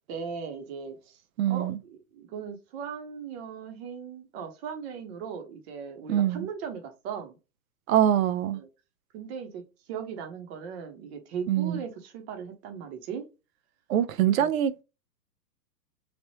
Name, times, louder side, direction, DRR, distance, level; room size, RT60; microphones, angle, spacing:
voice 1, 0.1-1.2 1.5-7.4 8.5-8.7 9.1-9.6 9.9-13.3 14.4-14.5, right 6 dB, 40° right, 1.0 m, -38 dB
voice 2, 1.4-1.8 6.1-6.5 7.9-8.6 11.5-11.8 13.9-14.8, right 10 dB, 55° right, 0.5 m, -24 dB
3.3 x 2.5 x 2.8 m
hypercardioid pair, 120°, 50 cm